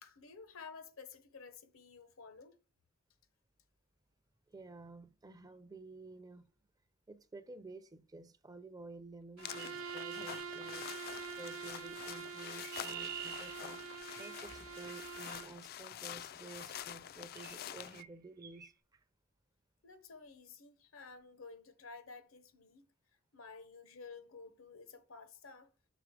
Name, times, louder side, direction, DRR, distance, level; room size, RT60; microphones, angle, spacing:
voice 1, 0.0-2.6 19.8-22.9 23.3-25.7, left 4 dB, 85° left, 1.0 m, -52 dB
voice 2, 4.5-6.5 7.1-19.0, right 2 dB, 20° right, 0.5 m, -53 dB
sound 1, 9.4-18.0, left 10 dB, 50° left, 0.3 m, -47 dB
Bowed string instrument, 9.4-15.6, right 6 dB, 85° right, 0.5 m, -46 dB
Chirp tweet, 9.6-11.2 12.2-15.4 16.5-16.7 17.3-17.6 17.9-18.1 18.4-18.7, right 10 dB, 45° right, 0.9 m, -49 dB
6.1 x 3.8 x 4.7 m
head